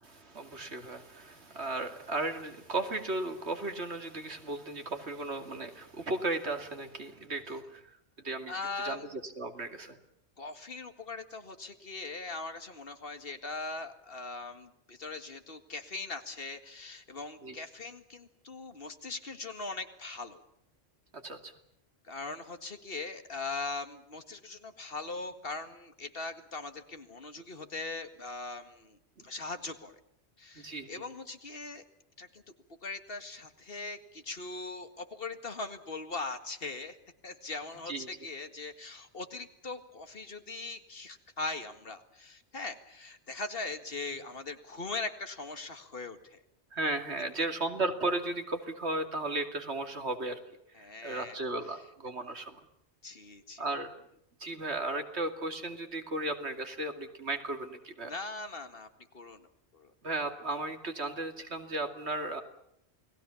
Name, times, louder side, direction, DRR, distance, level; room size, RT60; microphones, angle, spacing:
voice 1, 0.0-7.8 8.2-8.6 8.8-10.0 17.4-17.6 21.2-21.5 30.6-31.0 37.9-38.1 46.7-50.4 50.8-52.6 53.6-53.9 54.4-58.1 60.0-62.4, right 2 dB, 80° right, 6 dB, 2.8 m, -35 dB
voice 2, 8.5-9.1 10.4-20.4 22.0-29.0 29.2-30.0 30.4-31.8 32.2-32.4 32.8-37.0 37.2-46.4 47.4-47.5 50.7-51.4 53.0-53.7 58.0-58.9 59.1-59.5 59.7-59.9, left 3 dB, 60° left, 8 dB, 2.1 m, -40 dB
29.0 x 19.5 x 7.1 m, 0.75 s
omnidirectional pair, 1.1 m